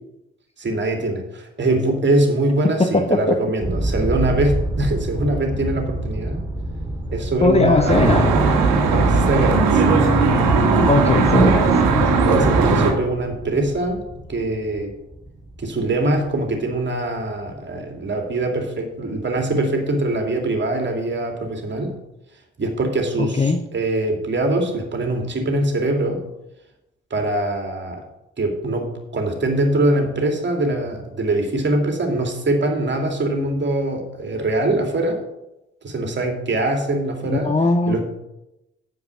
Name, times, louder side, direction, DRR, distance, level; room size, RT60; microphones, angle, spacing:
voice 1, 0.6-6.4 7.1-9.8 12.2-14.9 15.6-21.9 22.6-26.2 27.1-28.0 28.4-35.2 35.8-37.6 37.9-38.0, right 2 dB, 35° right, 3 dB, 2.6 m, -23 dB
voice 2, 2.8-3.3 7.4-8.3 10.9-11.6 23.2-23.6 37.3-38.0, left 3 dB, 20° left, 7 dB, 0.9 m, -18 dB
sound 1, 3.6-17.2, right 1 dB, 15° right, 2.0 m, -30 dB
Traffic noise roadway noise, 7.9-12.9, right 3 dB, 65° right, 1.7 m, -17 dB
9.6 x 7.4 x 6.4 m, 0.91 s
figure-of-eight pair, 45°, 32 cm